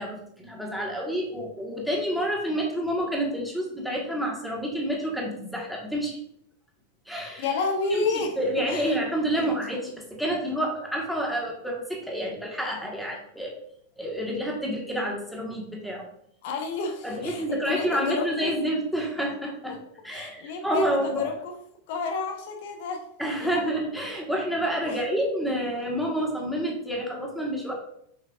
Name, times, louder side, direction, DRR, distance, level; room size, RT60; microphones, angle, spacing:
voice 1, 0.0-6.2 7.0-7.5 7.9-8.1 8.4-13.5 14.0-16.1 17.0-19.8 20.0-21.3 23.2-27.7, right 1 dB, ahead, -2 dB, 1.6 m, -29 dB
voice 2, 7.4-8.3 8.7-9.0 9.3-9.5 16.4-18.5 19.7-19.8 20.1-21.5 21.9-23.0 23.4-23.7 24.9-25.0, left 4 dB, 50° left, 3 dB, 0.9 m, -30 dB
7.0 x 5.4 x 2.5 m, 0.72 s
figure-of-eight pair, 90°, 0 cm